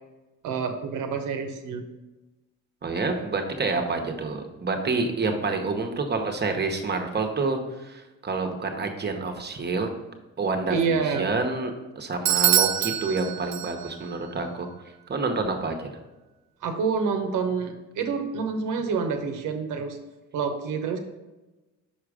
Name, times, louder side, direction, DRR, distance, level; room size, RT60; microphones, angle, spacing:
voice 1, 0.4-1.8 10.7-11.3 16.6-20.0 20.3-21.0, right 5 dB, 80° right, 4 dB, 0.9 m, -27 dB
voice 2, 2.8-9.9 10.4-14.7 15.1-15.8, right 3 dB, 35° right, 4 dB, 1.1 m, -28 dB
Bell / Doorbell, 12.3-14.1, right 12 dB, 65° right, 0.5 m, -24 dB
5.9 x 4.8 x 4.9 m, 1.1 s
cardioid pair, 90°, 30 cm